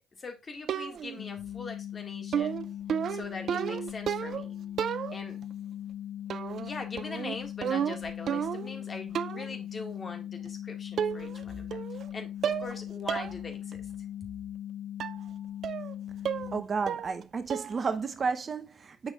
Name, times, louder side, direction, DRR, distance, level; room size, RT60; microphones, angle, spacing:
voice 1, 0.2-2.6 3.1-4.5 5.1-5.4 6.6-13.9, left 3 dB, 40° left, 1.8 m, -42 dB
sound 1, 0.7-1.2 2.3-4.5 4.8-5.4 6.3-6.7 7.0-8.8 9.1-9.5 10.5-10.6 11.0-11.4 11.7-12.1 12.4-12.8 13.1-13.3 13.7-13.8 15.0-15.2 15.6-15.9 16.2-16.6 16.9-17.2 17.5-17.8, right 8 dB, 60° right, 0.4 m, -32 dB
sound 2, 1.2-16.6, left 11 dB, 65° left, 0.3 m, -39 dB
voice 2, 16.5-19.1, right 5 dB, 45° right, 0.9 m, -32 dB
7.5 x 6.1 x 2.4 m
hypercardioid pair, 55°, 0 cm